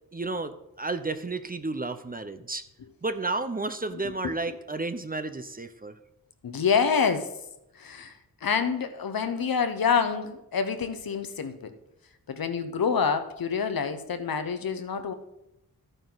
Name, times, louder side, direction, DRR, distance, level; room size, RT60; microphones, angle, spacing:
voice 1, 0.1-2.6 3.0-5.9, right 3 dB, 25° right, 10 dB, 0.7 m, -32 dB
voice 2, 6.4-7.3 7.8-8.1 8.4-11.7 12.3-15.1, left 6 dB, 70° left, 8 dB, 1.1 m, -27 dB
12.5 x 9.1 x 4.1 m, 0.86 s
wide cardioid pair, 95°, 36 cm